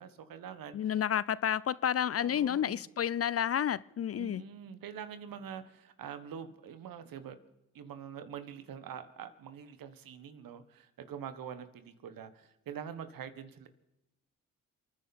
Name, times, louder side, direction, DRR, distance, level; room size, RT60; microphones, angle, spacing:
voice 1, 0.0-0.8 2.2-2.8 4.1-7.4 7.7-13.7, right 8 dB, 70° right, 11 dB, 1.6 m, -45 dB
voice 2, 0.7-4.4, left 9 dB, 40° left, 20 dB, 0.5 m, -30 dB
28.0 x 10.0 x 4.3 m, 0.95 s
supercardioid pair, 55°, 36 cm